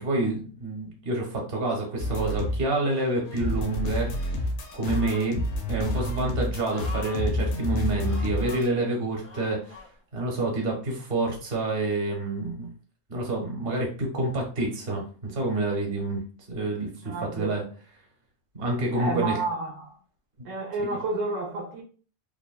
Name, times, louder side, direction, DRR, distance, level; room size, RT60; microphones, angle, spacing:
voice 1, 0.0-4.4 4.7-5.4 5.7-9.8 10.1-12.7 13.1-16.2 16.5-17.6 18.5-19.4 20.9-21.0, right 2 dB, 55° right, 1.1 m, -28 dB
sound 1, 2.0-2.6 2.9-8.7, left 1 dB, 75° left, 0.9 m, -29 dB
sound 2, 4.9-5.4 5.9-6.1 6.7-7.3 8.0-8.6 9.2-9.9 10.6-10.7, left 3 dB, 15° left, 0.5 m, -43 dB
voice 2, 17.0-17.5 18.9-20.0 20.4-21.8, right 3 dB, 85° right, 1.0 m, -30 dB
3.2 x 2.1 x 2.3 m
omnidirectional pair, 1.3 m